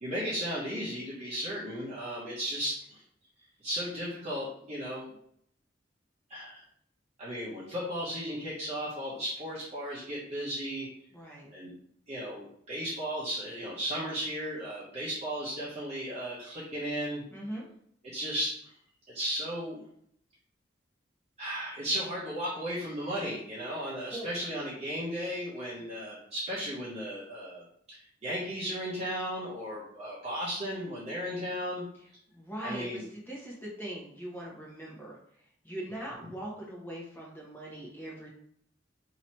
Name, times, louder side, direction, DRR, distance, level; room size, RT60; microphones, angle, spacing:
voice 1, 0.0-3.0 3.6-5.1 6.3-6.6 7.2-10.9 11.5-11.7 12.1-17.2 18.1-18.5 19.1-19.8 21.4-27.6 27.9-31.8 32.6-33.0, equal, 35° right, -8 dB, 0.9 m, -35 dB
voice 2, 11.1-11.5 17.3-17.7 24.1-24.3 32.0-35.2 35.6-38.3, right 1 dB, 10° left, -4 dB, 1.0 m, -41 dB
3.0 x 2.8 x 4.3 m, 0.67 s
head